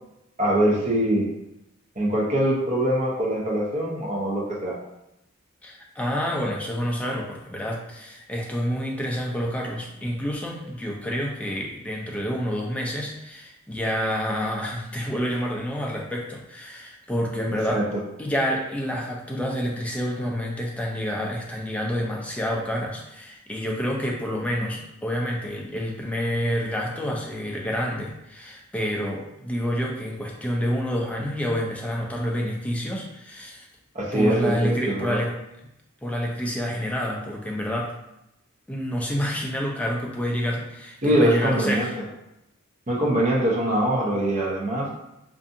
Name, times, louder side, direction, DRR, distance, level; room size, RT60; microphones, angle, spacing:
voice 1, 0.4-1.2 2.0-4.7 17.7-18.0 33.9-35.2 41.0-41.9 42.9-44.9, right 1 dB, 35° right, -4 dB, 0.6 m, -23 dB
voice 2, 5.6-17.8 18.2-33.7 34.1-35.4 36.0-37.9 38.7-41.9, equal, 5° left, -1 dB, 0.3 m, -28 dB
2.5 x 2.4 x 2.5 m, 0.86 s
head